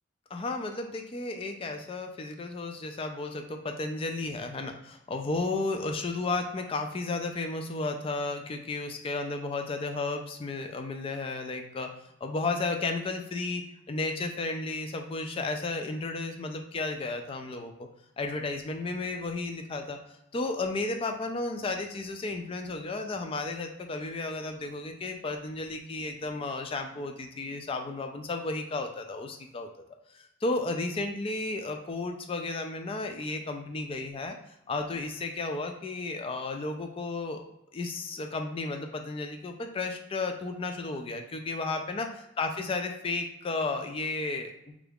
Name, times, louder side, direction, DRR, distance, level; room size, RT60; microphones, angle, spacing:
voice 1, 0.3-11.9 12.2-17.9 18.2-29.7 30.1-34.4 34.7-37.4 37.7-44.7, left 3 dB, 25° left, 5 dB, 0.3 m, -33 dB
3.7 x 2.3 x 3.4 m, 0.84 s
head